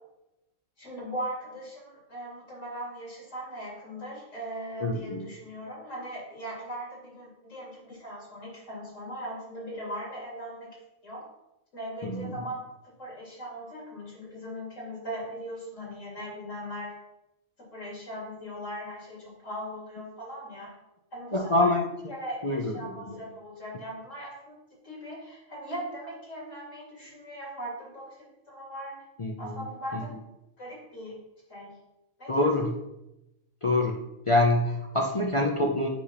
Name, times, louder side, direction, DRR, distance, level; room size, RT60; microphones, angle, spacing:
voice 1, 0.8-11.2 11.7-12.6 13.0-17.0 17.7-20.7 21.1-21.7 22.1-24.6 24.8-29.0 29.4-30.1 30.6-31.2 31.5-31.7 32.2-32.5, equal, 60° left, -4 dB, 3.0 m, -39 dB
voice 2, 4.8-5.2 12.0-12.3 21.3-21.8 22.4-23.2 29.2-29.6 29.9-30.0 32.3-32.7 33.6-35.9, left 1 dB, 45° left, -1 dB, 0.4 m, -26 dB
7.7 x 3.3 x 5.6 m, 0.91 s
omnidirectional pair, 1.4 m